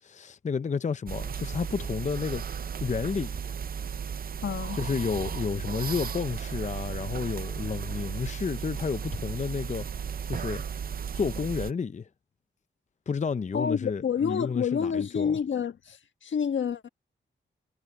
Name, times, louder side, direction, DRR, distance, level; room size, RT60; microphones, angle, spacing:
voice 1, 0.0-2.4 2.8-3.6 4.7-9.9 10.3-10.6 11.1-12.1 13.1-15.4, left 5 dB, 40° left, 0.6 m, -31 dB
sound 1, 1.1-11.7, right 7 dB, 50° right, 0.5 m, -35 dB
voice 2, 4.4-4.8 13.5-16.9, left 7 dB, 75° left, 1.4 m, -28 dB
cardioid pair, 65°, 20 cm